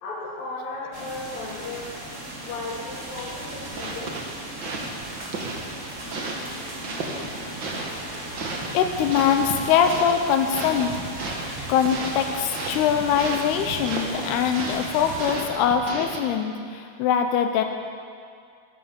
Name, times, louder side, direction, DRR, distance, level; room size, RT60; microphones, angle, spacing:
voice 1, 0.0-2.0 2.4-4.2, left 2 dB, 65° left, -6 dB, 3.5 m, -35 dB
sound 1, 0.9-15.4, right 1 dB, 30° right, 1.5 m, -37 dB
sound 2, 3.2-16.2, right 2 dB, 80° right, 1.0 m, -34 dB
voice 2, 8.7-11.0 11.7-17.6, left 8 dB, 80° left, 5 dB, 2.8 m, -22 dB
13.5 x 11.0 x 7.1 m, 2.2 s
omnidirectional pair, 4.6 m